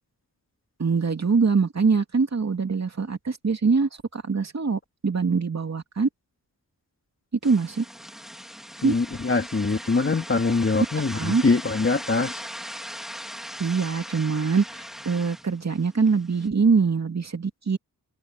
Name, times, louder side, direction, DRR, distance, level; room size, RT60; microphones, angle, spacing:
voice 1, 0.8-6.1 7.4-7.8 8.8-8.9 11.1-11.4 13.6-17.8, right 5 dB, 45° right, 2.6 m, -23 dB
sound 1, 7.4-16.5, equal, ahead, 3.8 m, -39 dB
voice 2, 8.8-12.4, left 4 dB, 35° left, 2.3 m, -23 dB
wide cardioid pair, 110°, 36 cm